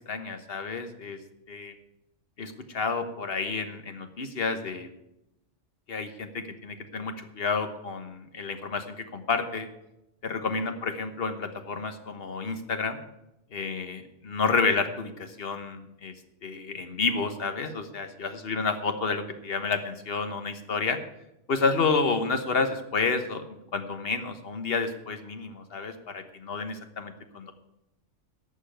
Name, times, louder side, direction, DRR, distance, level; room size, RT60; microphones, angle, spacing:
voice 1, 0.1-1.2 1.5-1.7 2.4-4.9 5.9-9.7 10.2-13.0 13.5-16.1 16.4-21.0 21.5-27.5, left 4 dB, 55° left, 8 dB, 1.3 m, -30 dB
11.5 x 6.4 x 9.1 m, 0.89 s
omnidirectional pair, 1.2 m